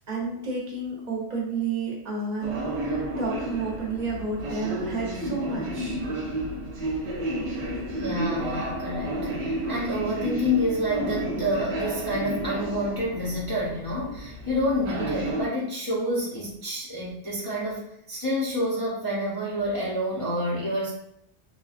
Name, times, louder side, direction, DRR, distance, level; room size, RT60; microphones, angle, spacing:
voice 1, 0.1-6.1, right 4 dB, 45° right, -3 dB, 0.8 m, -31 dB
sound 1, 2.4-15.5, right 1 dB, 80° right, 0.9 m, -31 dB
voice 2, 7.9-20.9, equal, 25° left, -8 dB, 0.5 m, -28 dB
3.2 x 2.2 x 2.4 m, 0.76 s
omnidirectional pair, 1.1 m